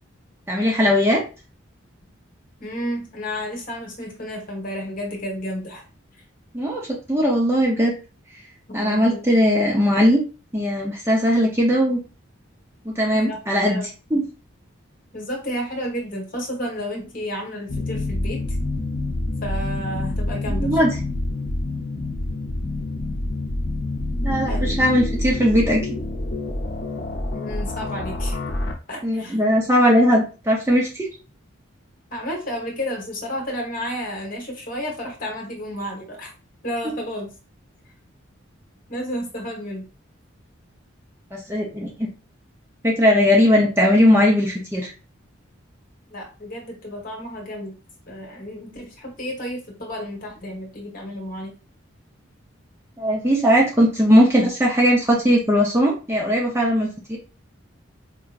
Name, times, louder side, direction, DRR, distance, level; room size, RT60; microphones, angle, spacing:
voice 1, 0.5-1.2 6.5-7.9 8.7-10.2 10.5-12.0 12.9-13.8 14.1-14.2 20.6-20.9 24.2-25.8 29.0-31.1 41.3-42.1 42.8-44.9 53.0-57.2, equal, 10° right, -2 dB, 0.6 m, -19 dB
voice 2, 2.6-5.8 8.7-9.2 13.1-13.4 13.7-13.9 15.1-18.4 19.4-20.9 24.5-24.8 27.3-28.4 28.9-29.4 32.1-36.3 36.6-37.3 38.9-39.8 46.1-47.7 48.1-51.5, equal, 40° left, 0 dB, 1.2 m, -31 dB
sound 1, 17.7-28.7, left 2 dB, 60° left, 0.7 m, -27 dB
4.5 x 2.8 x 2.4 m, 0.33 s
head